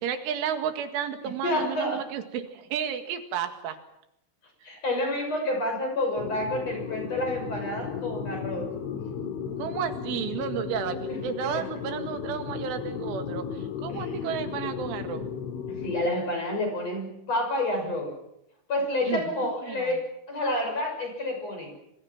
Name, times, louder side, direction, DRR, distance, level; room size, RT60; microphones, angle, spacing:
voice 1, 0.0-3.8 9.6-15.3 19.0-20.0, right 8 dB, 80° right, 7 dB, 4.4 m, -32 dB
voice 2, 1.2-2.0 4.6-8.7 11.1-11.6 13.9-14.2 15.8-18.2 18.7-21.7, left 1 dB, 30° left, 3 dB, 7.2 m, -29 dB
sound 1, 6.2-16.1, left 7 dB, 75° left, 4.3 m, -35 dB
27.0 x 26.0 x 6.1 m, 0.80 s
omnidirectional pair, 5.6 m